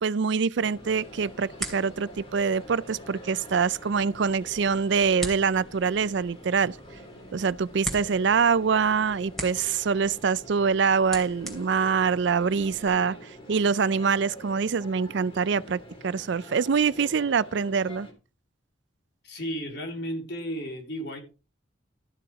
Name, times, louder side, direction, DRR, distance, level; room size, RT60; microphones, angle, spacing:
voice 1, 0.0-6.8 7.3-18.1, right 5 dB, 60° right, 0.4 m, -25 dB
sound 1, 0.6-18.1, equal, 30° left, 3.5 m, -46 dB
sound 2, 0.7-12.9, right 1 dB, ahead, 3.0 m, -42 dB
voice 2, 19.2-21.2, equal, 60° left, 3.5 m, -33 dB
13.5 x 6.9 x 4.8 m
head